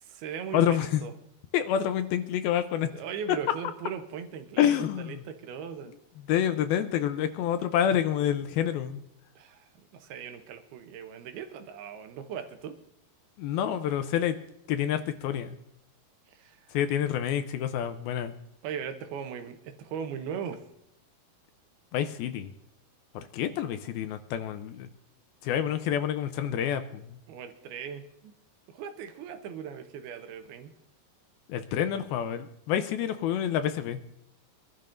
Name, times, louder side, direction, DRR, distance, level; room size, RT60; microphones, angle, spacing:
voice 1, 0.0-1.1 2.9-5.9 9.4-12.8 16.3-16.6 18.6-20.6 27.3-28.3 28.7-30.7, right 7 dB, 75° right, 7 dB, 2.7 m, -39 dB
voice 2, 0.5-1.0 1.5-2.9 4.6-5.2 6.3-9.0 13.4-14.4 14.7-15.6 16.7-18.3 21.9-22.5 23.1-24.9 25.4-27.2 31.5-34.0, left 10 dB, 80° left, 9 dB, 2.4 m, -28 dB
25.5 x 12.0 x 2.6 m, 0.79 s
omnidirectional pair, 4.6 m